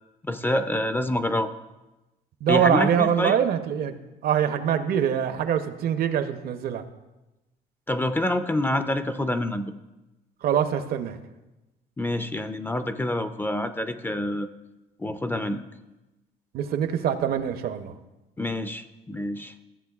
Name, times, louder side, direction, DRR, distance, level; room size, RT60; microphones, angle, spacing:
voice 1, 0.3-1.5 2.5-3.4 7.9-9.7 12.0-14.5 15.0-15.6 18.4-19.5, left 1 dB, 10° left, 10 dB, 0.4 m, -27 dB
voice 2, 2.4-4.0 4.2-6.8 10.4-11.2 16.5-17.9, right 9 dB, 65° right, 9 dB, 0.7 m, -24 dB
14.5 x 7.6 x 2.4 m, 1.0 s
cardioid pair, 110°, 17 cm